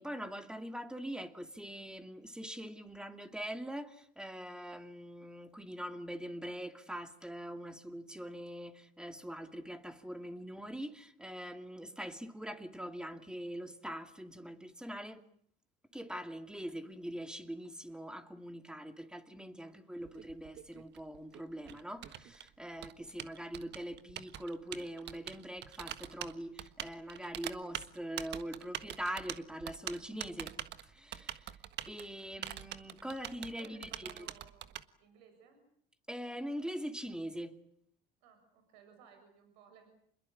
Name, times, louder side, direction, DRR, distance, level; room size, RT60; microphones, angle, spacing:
voice 1, 0.0-15.2 15.9-30.6 30.8-31.5 31.9-34.3 36.1-37.6, equal, 5° right, 2.5 m, -43 dB
Typing, 20.0-34.8, right 11 dB, 55° right, 1.6 m, -44 dB
voice 2, 33.6-34.7 35.0-35.6 38.2-39.9, right 7 dB, 90° right, 7.0 m, -59 dB
27.5 x 21.5 x 8.7 m
supercardioid pair, 100°, 21 cm